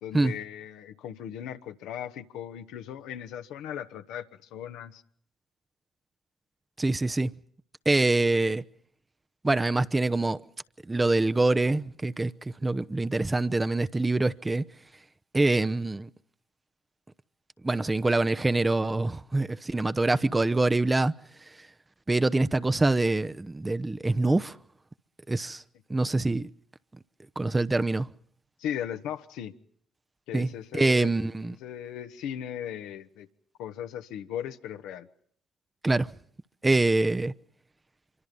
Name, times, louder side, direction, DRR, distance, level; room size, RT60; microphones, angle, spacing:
voice 1, 0.0-5.0 28.6-29.5 30.3-31.2 31.6-33.3 33.6-35.1, left 10 dB, 75° left, 1.4 m, -37 dB
voice 2, 6.8-7.3 7.8-8.6 9.4-10.4 10.9-12.3 12.6-14.6 15.3-16.1 17.6-21.1 22.1-24.6 25.3-25.6 25.9-26.5 27.4-28.1 30.3-30.5 30.7-31.5 35.8-36.1 36.6-37.3, right 2 dB, 20° right, 0.9 m, -25 dB
26.5 x 24.0 x 5.4 m
hypercardioid pair, 50°, 0 cm